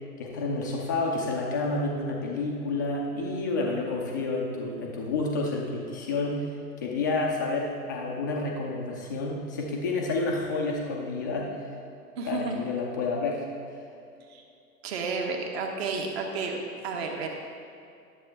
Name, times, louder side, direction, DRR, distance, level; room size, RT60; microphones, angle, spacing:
voice 1, 0.2-6.5 6.8-11.5 12.2-13.4, left 3 dB, 15° left, -1 dB, 0.4 m, -29 dB
voice 2, 12.2-12.6 14.3-14.4 14.8-17.3, right 4 dB, 40° right, 2 dB, 1.3 m, -31 dB
11.0 x 7.5 x 3.4 m, 2.5 s
figure-of-eight pair, 115°, 47 cm